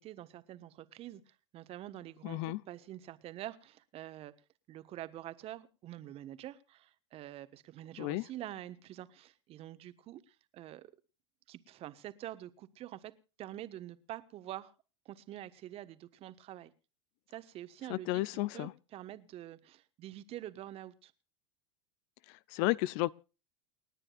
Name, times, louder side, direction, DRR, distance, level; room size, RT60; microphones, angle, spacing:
voice 1, 0.0-4.3 4.7-10.9 11.5-13.1 13.4-14.7 15.0-16.7 17.3-18.2 18.5-21.1, right 13 dB, 40° right, 1.3 m, -46 dB
voice 2, 2.2-2.6 8.0-8.2 17.9-18.7 22.3-23.1, left 18 dB, 50° left, 0.6 m, -33 dB
29.0 x 9.8 x 2.5 m
hypercardioid pair, 90°, 16 cm